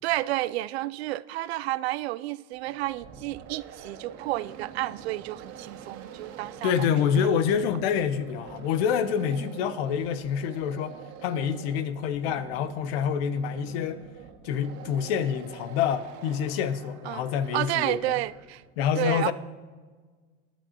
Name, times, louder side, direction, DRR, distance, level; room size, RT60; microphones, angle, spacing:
voice 1, 0.0-6.9 9.4-9.5 17.1-17.3 17.5-18.6 19.0-19.3, right 17 dB, 85° right, 0.5 m, -31 dB
sound 1, 2.5-18.6, right 8 dB, 65° right, 1.9 m, -45 dB
voice 2, 6.6-11.0 11.2-14.0 14.4-18.1 18.8-19.3, left 8 dB, 70° left, 1.0 m, -27 dB
20.5 x 10.5 x 2.9 m
hypercardioid pair, 90°, 31 cm